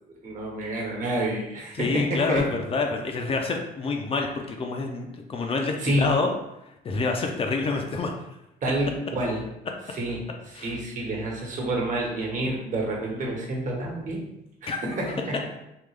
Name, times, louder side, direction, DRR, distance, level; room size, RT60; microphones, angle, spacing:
voice 1, 0.2-2.4 5.8-6.1 8.6-9.4 9.9-14.2 14.6-15.4, right 1 dB, 50° right, -2 dB, 1.1 m, -29 dB
voice 2, 1.7-6.3 6.8-8.1 10.6-10.7 14.7-14.8, left 3 dB, 35° left, 2 dB, 0.5 m, -27 dB
3.6 x 2.2 x 3.2 m, 0.87 s
cardioid pair, 110°, 17 cm